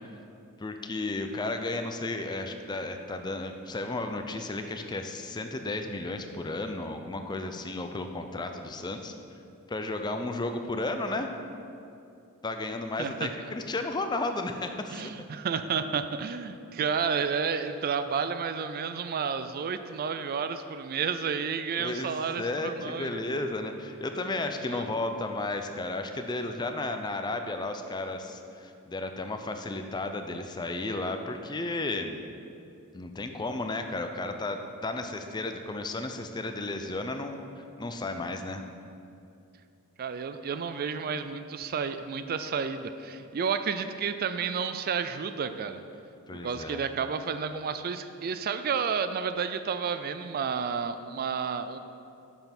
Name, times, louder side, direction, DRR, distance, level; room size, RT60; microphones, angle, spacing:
voice 1, 0.6-9.1 9.7-11.3 12.4-15.1 21.8-32.2 32.9-38.6 46.3-46.8, left 2 dB, 20° left, 6 dB, 0.4 m, -33 dB
voice 2, 13.0-13.3 14.9-23.2 24.6-24.9 40.0-45.8 46.3-51.8, right 6 dB, 45° right, 10 dB, 0.4 m, -31 dB
6.9 x 5.5 x 5.9 m, 2.6 s
head